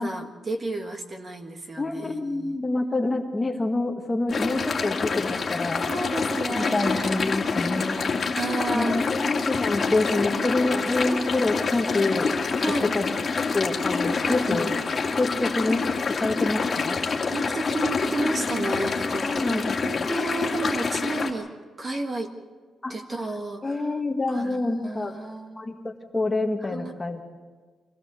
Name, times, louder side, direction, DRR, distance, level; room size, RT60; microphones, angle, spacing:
voice 1, 0.0-2.6 4.5-4.9 5.6-7.2 8.3-9.0 10.3-10.6 12.6-12.9 14.2-14.4 17.3-19.4 19.8-21.5 21.8-22.3 22.9-23.8 24.3-25.7 26.7-27.0, right 2 dB, 30° right, 4 dB, 1.6 m, -32 dB
voice 2, 1.8-5.8 6.6-8.1 8.7-12.3 12.8-13.1 13.5-14.7 15.2-15.9 16.2-17.0 19.2-20.0 22.8-22.9 23.6-25.1 25.5-27.2, left 2 dB, 15° left, 3 dB, 1.6 m, -27 dB
sound 1, 4.3-21.3, left 4 dB, 35° left, 2.1 m, -27 dB
24.5 x 16.5 x 6.9 m, 1.5 s
wide cardioid pair, 150°, 0 cm